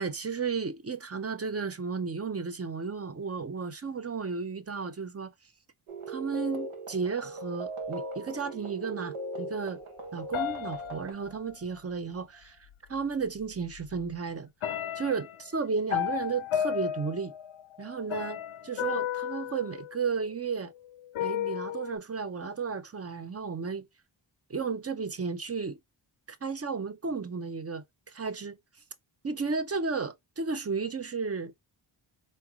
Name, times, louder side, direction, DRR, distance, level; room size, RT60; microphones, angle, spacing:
voice 1, 0.0-5.3 6.1-9.8 10.1-12.6 12.9-14.5 15.0-17.3 17.8-20.7 21.2-23.8 24.5-25.8 26.4-28.6 29.2-31.5, right 5 dB, 30° right, 0.6 m, -33 dB
sound 1, 5.9-11.1, right 2 dB, 85° right, 1.0 m, -39 dB
sound 2, 10.3-11.8 13.0-13.1 13.5-14.1 14.6-20.5 21.1-22.0, left 10 dB, 75° left, 0.6 m, -34 dB
4.0 x 3.3 x 2.3 m
cardioid pair, 50°, 49 cm